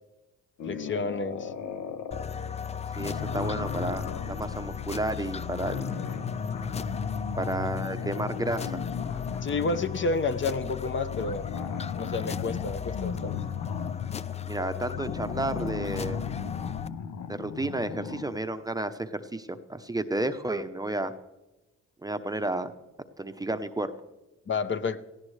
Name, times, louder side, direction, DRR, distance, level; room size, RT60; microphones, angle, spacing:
sound 1, 0.6-2.3 2.9-10.1 11.1-18.5, left 6 dB, 80° left, 1.0 m, -36 dB
voice 1, 0.6-1.5 9.4-11.5 11.9-13.4 24.5-25.0, left 3 dB, 40° left, 11 dB, 0.8 m, -30 dB
sound 2, 2.1-16.9, left 7 dB, 20° left, 0.4 m, -36 dB
voice 2, 3.0-5.9 7.4-8.8 14.5-16.2 17.3-21.1 22.0-22.7 23.2-23.9, right 2 dB, 10° right, 9 dB, 0.7 m, -31 dB
17.0 x 16.0 x 3.3 m, 1.0 s
cardioid pair, 90°, 30 cm